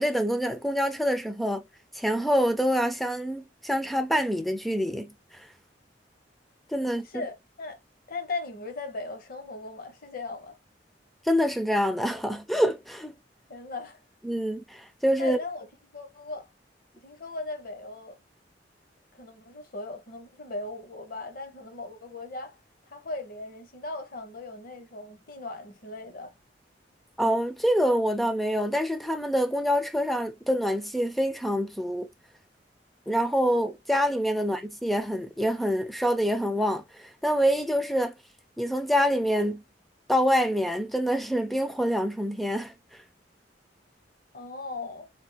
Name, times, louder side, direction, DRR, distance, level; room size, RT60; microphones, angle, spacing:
voice 1, 0.0-1.6 1.9-5.5 6.7-7.1 11.2-13.1 14.2-15.4 27.2-32.1 33.1-38.1 38.6-39.6 40.1-42.7, equal, ahead, 0.5 m, -26 dB
voice 2, 7.0-7.8 8.1-10.5 13.5-14.0 15.2-15.7 15.9-16.5 17.0-18.2 19.1-22.6 22.9-26.3 44.3-45.1, left 3 dB, 55° left, 0.9 m, -38 dB
3.4 x 2.4 x 2.7 m
head